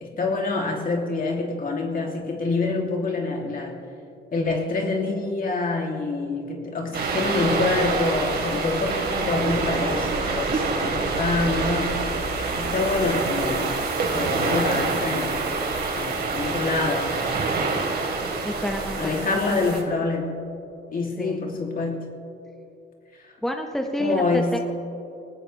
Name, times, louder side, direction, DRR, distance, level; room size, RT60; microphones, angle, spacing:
voice 1, 0.0-3.7 4.3-12.0 12.6-15.5 16.0-17.4 19.0-20.5 20.9-22.1 23.2-23.3 24.0-24.6, left 3 dB, 45° left, 1 dB, 3.0 m, -26 dB
sound 1, 6.9-19.8, right 3 dB, 55° right, 3.2 m, -26 dB
voice 2, 18.4-19.8 21.2-21.4 23.4-24.6, equal, ahead, 3 dB, 1.1 m, -29 dB
22.0 x 19.0 x 3.4 m, 2.7 s
cardioid pair, 90°, 20 cm